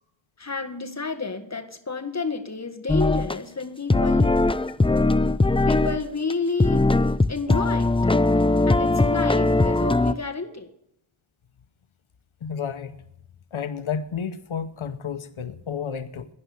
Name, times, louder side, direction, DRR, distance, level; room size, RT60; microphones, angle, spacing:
voice 1, 0.4-4.4 5.7-6.8 7.3-8.2 8.7-10.7, left 4 dB, 35° left, 5 dB, 1.7 m, -30 dB
sound 1, 2.9-3.3 3.9-6.0 6.3-6.4 6.6-10.1, left 2 dB, 10° left, 0.4 m, -20 dB
voice 2, 12.4-13.0 13.5-16.3, left 7 dB, 85° left, 11 dB, 0.9 m, -31 dB
12.0 x 10.5 x 7.0 m, 0.77 s
wide cardioid pair, 60°, 47 cm